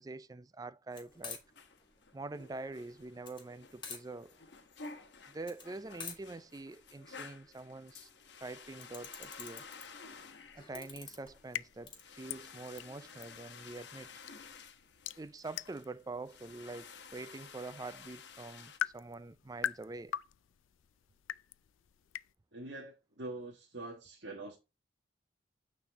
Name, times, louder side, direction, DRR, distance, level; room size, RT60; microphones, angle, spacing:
voice 1, 0.0-1.4 2.1-4.4 5.3-8.1 8.4-9.7 10.5-14.1 15.2-20.1, right 3 dB, 20° right, 0.3 m, -45 dB
sound 1, 0.9-12.0, left 5 dB, 25° left, 2.0 m, -51 dB
sound 2, 1.1-18.8, left 5 dB, 60° left, 1.2 m, -53 dB
sound 3, 11.0-22.4, left 10 dB, 85° left, 0.4 m, -45 dB
voice 2, 22.5-24.6, right 2 dB, 60° right, 1.5 m, -44 dB
9.0 x 4.1 x 3.4 m
head